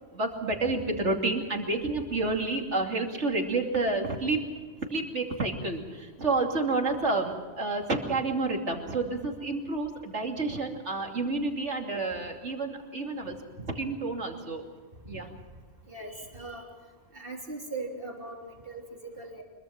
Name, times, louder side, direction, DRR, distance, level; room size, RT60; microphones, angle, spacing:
voice 1, 0.1-4.5 4.9-13.4 13.7-14.6 15.1-15.3, right 3 dB, 85° right, 2 dB, 3.2 m, -29 dB
voice 2, 15.9-16.6 17.1-19.4, right 3 dB, 50° right, 1 dB, 3.6 m, -40 dB
25.5 x 23.0 x 6.0 m, 1.4 s
omnidirectional pair, 1.2 m